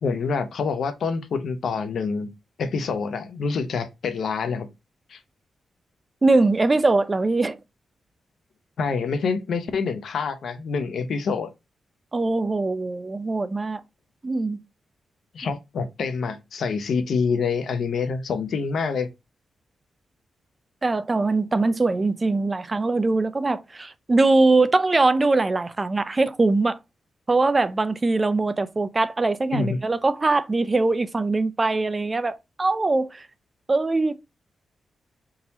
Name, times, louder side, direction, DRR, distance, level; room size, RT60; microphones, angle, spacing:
voice 1, 0.0-2.3 2.6-4.7 5.1-5.2 8.8-11.5 15.3-19.1 29.5-29.8, left 5 dB, 70° left, 0.7 m, -26 dB
voice 2, 6.2-7.6 12.1-13.8 14.2-14.6 20.8-26.8 27.3-33.2 33.7-34.2, right 3 dB, 25° right, 0.4 m, -22 dB
3.7 x 2.9 x 4.0 m
wide cardioid pair, 120°, 0 cm